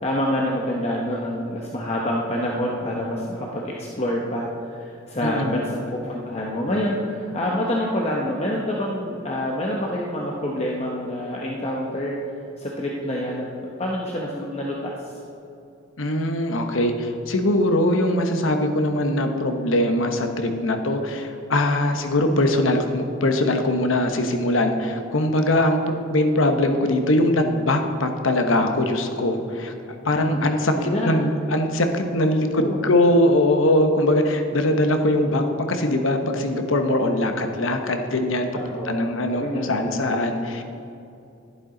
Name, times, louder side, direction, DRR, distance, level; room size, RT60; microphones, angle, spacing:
voice 1, 0.0-12.2 12.6-15.1 21.9-22.0 30.3-30.4 30.8-31.1 32.5-32.8 38.5-39.0 39.3-40.0, left 1 dB, 30° left, -2 dB, 0.9 m, -27 dB
voice 2, 5.2-5.6 16.0-29.7 30.0-38.5 38.8-40.6, left 1 dB, 75° left, 5 dB, 1.0 m, -21 dB
11.5 x 11.0 x 3.9 m, 2.7 s
head